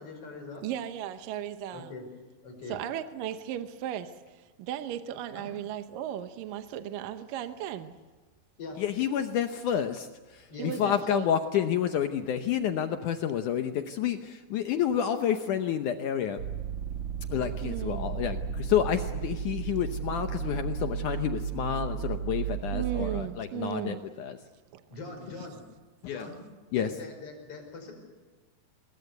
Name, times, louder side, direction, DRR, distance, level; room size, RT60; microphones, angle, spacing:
voice 1, 0.0-0.6 1.7-2.1 2.4-2.8 5.4-5.5 8.6-8.8 10.5-10.9 24.9-25.6 26.1-26.4 26.7-27.9, left 3 dB, 35° left, 6.0 m, -42 dB
voice 2, 0.6-1.9 2.7-7.9 10.6-11.3 17.6-18.2 22.7-24.0 24.7-24.8, right 11 dB, 70° right, 2.3 m, -36 dB
voice 3, 8.8-10.1 10.3-16.4 17.3-24.4 26.0-26.3 26.7-26.9, left 9 dB, 75° left, 1.9 m, -29 dB
sound 1, 16.4-23.2, right 7 dB, 55° right, 2.5 m, -34 dB
25.5 x 21.5 x 8.1 m
omnidirectional pair, 4.7 m